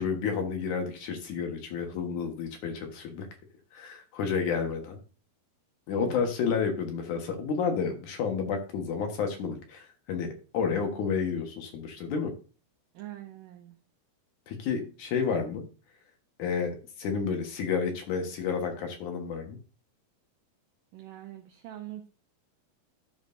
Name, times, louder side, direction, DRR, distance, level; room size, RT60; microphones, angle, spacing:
voice 1, 0.0-3.3 3.7-5.0 5.9-10.3 10.5-12.3 14.5-15.6 16.4-19.6, left 6 dB, 60° left, 4 dB, 2.5 m, -30 dB
voice 2, 6.0-6.3 12.9-13.8 20.9-22.1, right 13 dB, 75° right, 3 dB, 2.0 m, -44 dB
13.0 x 6.3 x 2.6 m, 0.34 s
omnidirectional pair, 4.6 m